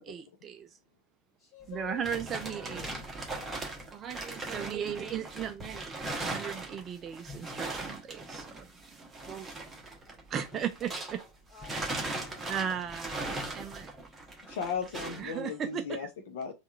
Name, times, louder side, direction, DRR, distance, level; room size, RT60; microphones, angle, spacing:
voice 1, 0.1-0.7 1.7-2.8 3.9-5.9 6.2-8.6 9.3-9.5 10.3-11.2 12.5-13.2 13.5-13.9 15.2-16.0, right 8 dB, 25° right, 0.4 m, -36 dB
voice 2, 1.4-3.1 11.5-12.9, left 6 dB, 25° left, 1.9 m, -50 dB
sound 1, 1.6-11.3 11.6-15.3, right 2 dB, 10° right, 1.1 m, -39 dB
voice 3, 14.5-16.5, left 6 dB, 55° left, 0.7 m, -36 dB
3.5 x 2.4 x 4.3 m
figure-of-eight pair, 90°, 0 cm